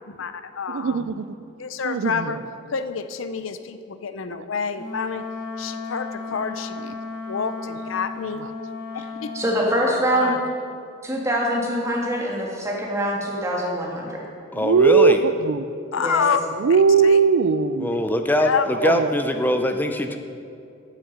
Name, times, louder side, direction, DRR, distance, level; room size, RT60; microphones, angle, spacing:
voice 1, 0.1-1.2 1.6-2.4 2.7-5.2 5.6-6.8 7.3-8.4 8.9-9.3 9.8-10.4 15.9-16.4 17.0-17.2 18.4-18.7, left 6 dB, 90° left, 11 dB, 0.6 m, -28 dB
voice 2, 0.7-1.3 1.8-2.4 4.3-4.4 6.8-6.9 8.4-8.5 14.6-15.6 16.6-18.0 18.7-19.1, right 5 dB, 80° right, 14 dB, 0.4 m, -19 dB
Wind instrument woodwind instrument, 4.7-9.6, left 4 dB, 50° left, 2.1 m, -34 dB
voice 3, 9.3-10.3 11.0-14.3 16.0-16.2, equal, 15° right, -2 dB, 1.9 m, -24 dB
voice 4, 14.5-15.2 17.8-20.2, left 1 dB, 10° left, 6 dB, 0.5 m, -22 dB
8.9 x 8.8 x 6.6 m, 2.5 s
head